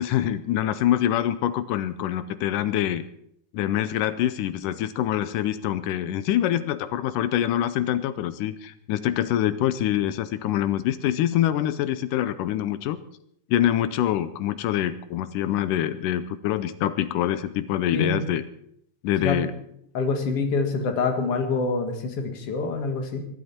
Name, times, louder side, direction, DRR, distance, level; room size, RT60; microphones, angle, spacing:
voice 1, 0.0-3.0 3.5-13.0 13.5-18.4 19.0-19.5, left 11 dB, 80° left, 13 dB, 2.3 m, -25 dB
voice 2, 19.9-23.2, left 4 dB, 50° left, 4 dB, 2.7 m, -26 dB
22.5 x 11.5 x 4.4 m, 0.70 s
omnidirectional pair, 3.8 m